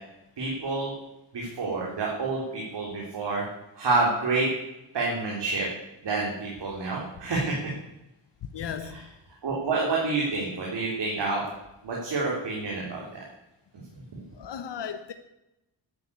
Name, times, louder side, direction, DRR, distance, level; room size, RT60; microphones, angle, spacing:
voice 1, 0.4-0.9 1.3-3.4 3.8-4.5 4.9-5.7 6.0-7.7 8.9-9.0 9.4-11.4 11.8-13.2, right 3 dB, 70° right, 3.8 m, -28 dB
voice 2, 8.5-9.0 14.4-15.1, left 8 dB, 70° left, 1.2 m, -35 dB
11.0 x 9.7 x 8.5 m
cardioid pair, 90°, 43 cm